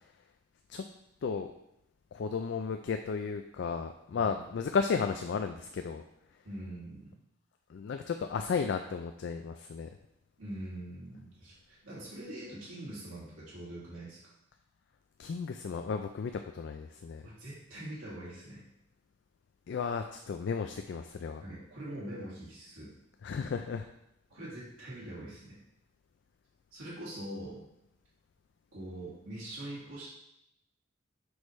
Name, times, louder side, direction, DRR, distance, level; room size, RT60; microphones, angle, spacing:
voice 1, 1.2-1.5 2.1-6.0 7.7-9.9 15.2-17.2 19.7-21.4 23.2-23.9, left 5 dB, 60° left, 6 dB, 0.3 m, -34 dB
voice 2, 6.4-7.1 10.4-14.3 17.2-18.6 21.4-22.9 24.3-25.6 26.7-27.6 28.7-30.1, right 1 dB, 90° right, -8 dB, 2.1 m, -43 dB
6.2 x 4.9 x 3.1 m, 0.81 s
head